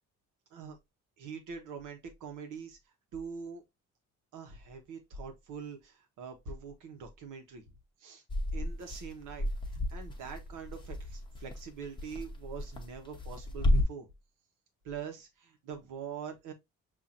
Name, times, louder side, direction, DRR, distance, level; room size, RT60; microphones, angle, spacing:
voice 1, 1.2-2.8 3.1-3.6 4.3-7.6 8.0-8.2 8.5-14.1 14.8-16.5, right 6 dB, 90° right, 1.1 m, -44 dB
sound 1, 8.3-13.8, left 1 dB, 15° left, 0.9 m, -32 dB
5.7 x 2.7 x 2.5 m
cardioid pair, 90°, 30 cm